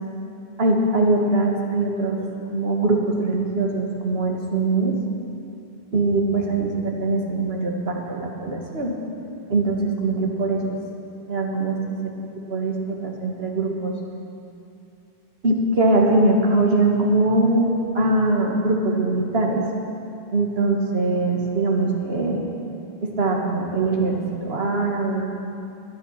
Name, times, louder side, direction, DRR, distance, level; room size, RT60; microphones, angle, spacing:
voice 1, 0.6-2.2 2.5-4.9 5.9-8.9 9.5-10.8 11.3-11.8 12.0-12.1 12.5-13.9 15.4-19.6 20.3-22.4 23.2-25.5, right 2 dB, 80° right, 0 dB, 2.0 m, -22 dB
21.0 x 9.3 x 5.8 m, 2.7 s
omnidirectional pair, 1.0 m